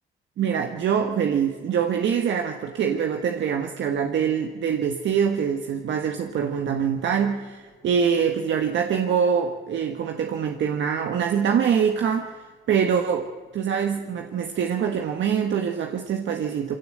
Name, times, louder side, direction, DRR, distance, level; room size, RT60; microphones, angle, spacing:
voice 1, 0.4-16.8, right 7 dB, 70° right, 4 dB, 1.6 m, -24 dB
23.5 x 17.0 x 7.6 m, 1.5 s
cardioid pair, 90°, 20 cm